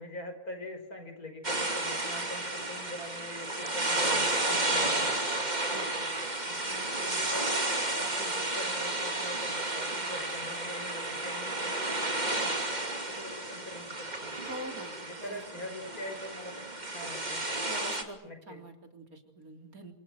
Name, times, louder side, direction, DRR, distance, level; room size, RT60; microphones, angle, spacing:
voice 1, 0.0-5.6 6.0-7.6 7.9-12.8 13.1-14.3 15.0-17.4 18.2-18.6, left 1 dB, 75° left, 7 dB, 5.9 m, -44 dB
sound 1, 1.4-18.0, right 2 dB, 30° right, 2.8 m, -32 dB
voice 2, 14.5-15.4 17.7-19.9, right 1 dB, 70° right, 4 dB, 3.8 m, -44 dB
28.5 x 27.0 x 6.5 m, 0.83 s
omnidirectional pair, 1.6 m